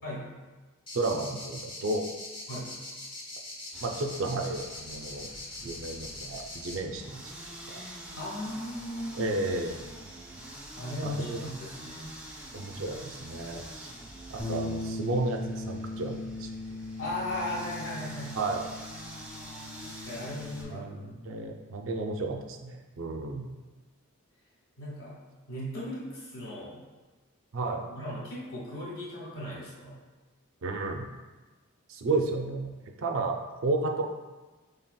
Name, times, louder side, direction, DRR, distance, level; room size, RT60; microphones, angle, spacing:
sound 1, 0.9-6.8, left 2 dB, 20° left, 0.9 m, -42 dB
voice 1, 0.9-2.0 3.8-5.3 5.6-7.3 7.7-7.8 9.2-9.9 11.0-11.4 12.5-13.9 14.3-16.5 18.3-18.7 20.7-23.5 27.5-27.8 30.6-31.1 31.9-32.7 33.0-34.1, right 2 dB, 60° right, 3 dB, 0.4 m, -32 dB
sound 2, 3.7-20.6, right 1 dB, 5° right, 0.5 m, -46 dB
voice 2, 8.2-9.4 10.8-12.1 17.0-18.4 19.7-21.0 24.8-25.2 25.5-26.8 27.6-30.0, left 1 dB, 70° left, -8 dB, 1.3 m, -37 dB
Bass guitar, 14.4-20.6, left 2 dB, 50° left, 1.1 m, -39 dB
5.6 x 3.3 x 2.2 m, 1.2 s
head